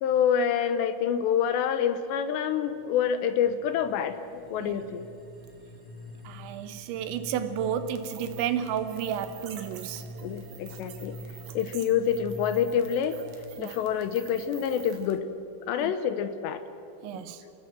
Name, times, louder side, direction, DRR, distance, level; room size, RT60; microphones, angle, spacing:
voice 1, 0.0-5.1 10.2-11.2 11.5-13.2 13.6-15.3 15.7-16.6 17.1-17.5, left 8 dB, 75° left, 2.8 m, -27 dB
sound 1, 2.7-13.3, left 1 dB, 5° right, 5.3 m, -45 dB
voice 2, 6.2-10.0 13.6-13.7 15.8-15.9 17.0-17.4, right 9 dB, 80° right, 3.2 m, -32 dB
sound 2, 8.0-15.2, right 8 dB, 60° right, 2.9 m, -48 dB
29.5 x 18.5 x 7.5 m
omnidirectional pair, 5.5 m